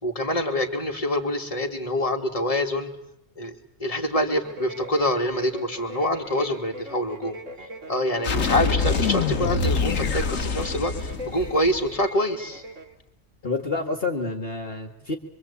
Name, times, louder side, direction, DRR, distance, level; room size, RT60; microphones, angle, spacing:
voice 1, 0.0-2.9 3.4-3.5 3.8-7.4 7.9-12.6, left 1 dB, 25° left, 3 dB, 2.7 m, -26 dB
sound 1, 4.4-13.0, equal, 75° right, 2.4 m, -40 dB
sound 2, 8.2-11.9, left 4 dB, 80° left, 1.8 m, -25 dB
voice 2, 13.4-15.2, left 3 dB, 45° left, 4 dB, 2.3 m, -28 dB
25.5 x 25.0 x 8.6 m, 0.76 s
omnidirectional pair, 1.3 m